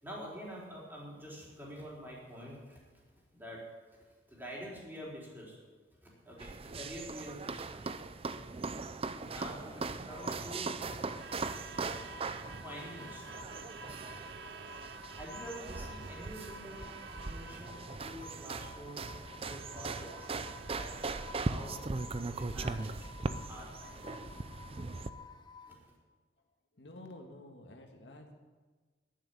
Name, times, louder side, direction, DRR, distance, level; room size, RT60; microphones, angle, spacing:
voice 1, 0.0-2.8 3.3-4.0 4.3-5.6 6.0-7.9 9.2-10.8 11.4-11.6 12.6-13.6 15.1-20.3 20.7-20.9 21.4-21.8 22.3-23.1 23.5-24.3 25.7-25.8, equal, 10° right, -5 dB, 4.1 m, -47 dB
sound 1, 6.4-25.1, right 3 dB, 35° right, 0.6 m, -40 dB
sound 2, 10.1-25.8, left 4 dB, 25° left, 0.8 m, -53 dB
Truck / Alarm, 10.9-22.9, right 6 dB, 80° right, 0.5 m, -52 dB
voice 2, 26.7-28.3, left 1 dB, 85° left, 3 dB, 1.8 m, -50 dB
10.5 x 10.5 x 8.5 m, 1.4 s
head